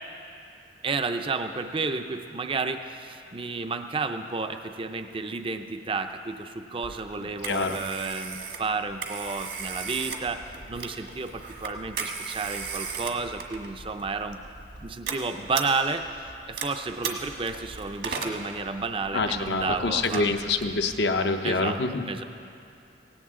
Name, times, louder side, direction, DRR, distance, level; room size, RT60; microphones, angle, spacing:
voice 1, 0.8-10.4 10.7-14.4 14.8-16.1 16.5-20.3 21.4-21.8 22.1-22.2, right 4 dB, 30° right, 7 dB, 0.5 m, -31 dB
Telephone, 6.8-21.1, right 5 dB, 70° right, 1.6 m, -37 dB
voice 2, 7.2-7.8 19.1-22.0, left 3 dB, 70° left, 5 dB, 0.8 m, -26 dB
18.0 x 17.0 x 3.7 m, 2.6 s
head